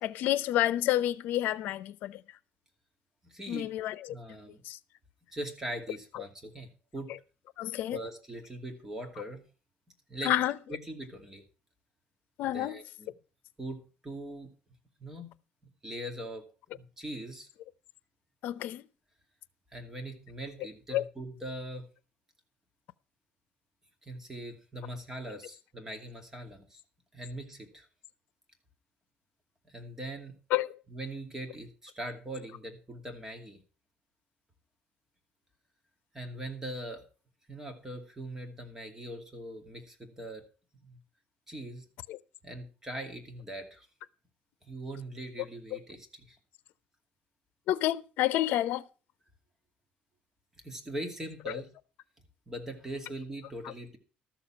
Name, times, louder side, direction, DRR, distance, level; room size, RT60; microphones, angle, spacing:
voice 1, 0.0-2.2 3.5-4.1 4.6-4.8 6.1-6.2 7.6-8.0 10.2-10.6 12.4-12.8 18.4-18.8 20.9-21.0 30.5-30.7 42.1-42.2 47.7-48.8 51.5-51.6, left 13 dB, 75° left, 0.7 m, -29 dB
voice 2, 3.2-3.7 4.1-4.6 5.3-7.2 7.9-9.5 10.1-10.3 10.7-11.4 12.5-13.1 13.6-14.5 15.0-15.3 15.8-16.4 16.7-17.5 19.7-21.9 24.0-26.8 27.1-27.9 29.6-30.4 30.9-33.6 36.1-37.0 37.5-40.4 40.8-41.0 41.5-41.9 42.4-43.9 44.6-46.4 50.6-51.7 52.5-54.0, right 1 dB, 15° right, 2.4 m, -41 dB
13.0 x 7.1 x 5.7 m
cardioid pair, 140°, 3 cm